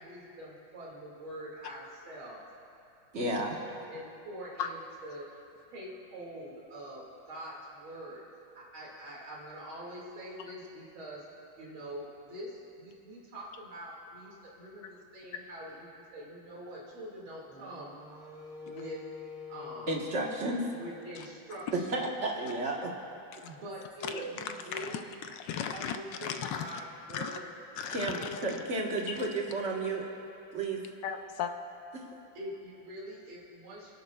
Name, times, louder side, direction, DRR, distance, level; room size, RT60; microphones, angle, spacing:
voice 1, 0.0-2.4 3.1-5.3 5.7-8.2 8.5-11.3 11.6-18.0 18.6-19.0 19.5-20.0 20.7-21.9 23.4-25.2 25.7-27.5 28.1-28.6 32.3-33.9, equal, 85° right, -5 dB, 2.9 m, -44 dB
voice 2, 3.1-3.5 19.9-20.7 21.7-22.9 24.1-24.4 27.9-30.0 30.5-30.8 31.9-32.0, right 2 dB, 40° right, 0 dB, 1.4 m, -32 dB
Wind instrument woodwind instrument, 17.5-21.7, left 7 dB, ahead, 1.5 m, -48 dB
voice 3, 24.2-26.8 27.1-27.4 27.8-28.6 29.1-29.3 31.0-31.5, left 8 dB, 75° left, 6 dB, 1.2 m, -37 dB
29.5 x 11.0 x 2.3 m, 2.9 s
omnidirectional pair, 2.2 m